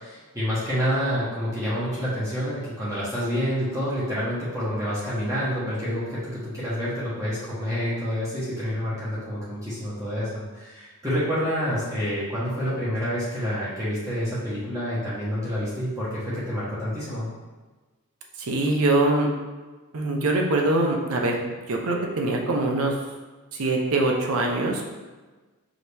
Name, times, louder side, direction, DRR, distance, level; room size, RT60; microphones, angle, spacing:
voice 1, 0.0-17.3, equal, 15° right, -10 dB, 1.1 m, -28 dB
voice 2, 18.4-19.3 19.9-21.4 21.7-22.9 23.5-24.8, right 2 dB, 75° right, 1 dB, 0.7 m, -23 dB
4.9 x 2.8 x 3.3 m, 1.3 s
head